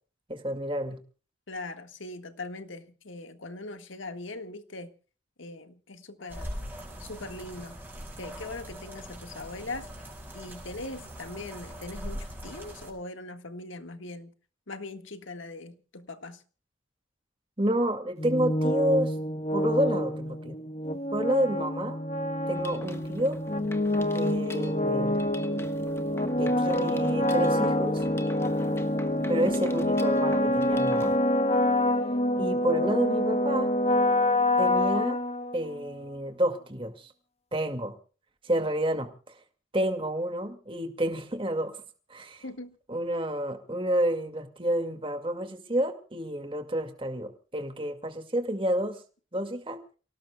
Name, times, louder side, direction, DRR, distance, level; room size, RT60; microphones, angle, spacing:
voice 1, 0.3-1.0 17.6-19.1 19.5-20.6 21.1-22.0 22.5-23.4 24.1-25.2 26.4-28.0 29.3-31.1 32.4-33.7 34.6-35.2 35.5-37.1 37.5-37.9 38.4-39.1 39.7-41.7 42.1-42.4 42.9-49.0 49.3-49.8, right 1 dB, 25° right, 2.1 m, -29 dB
voice 2, 1.5-4.9 5.4-6.7 7.0-7.8 8.2-9.9 10.3-14.3 14.7-16.4 42.4-42.8, left 2 dB, 80° left, 1.7 m, -40 dB
sound 1, 6.3-12.9, equal, 10° right, 5.7 m, -41 dB
sound 2, 18.2-35.8, left 1 dB, 30° left, 0.9 m, -26 dB
Mechanisms, 22.5-31.2, left 2 dB, 15° left, 1.2 m, -46 dB
29.5 x 18.0 x 2.3 m
head